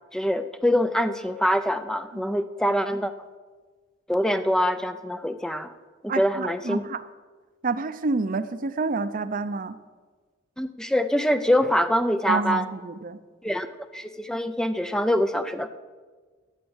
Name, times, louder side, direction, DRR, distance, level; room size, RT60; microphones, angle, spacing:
voice 1, 0.1-3.1 4.1-5.7 6.0-6.8 10.6-12.7 13.4-13.7 13.9-15.7, equal, 5° left, 10 dB, 0.4 m, -24 dB
voice 2, 6.1-7.1 7.6-9.8 12.3-13.2, right 3 dB, 45° right, 12 dB, 0.6 m, -28 dB
12.0 x 7.4 x 8.8 m, 1.4 s
head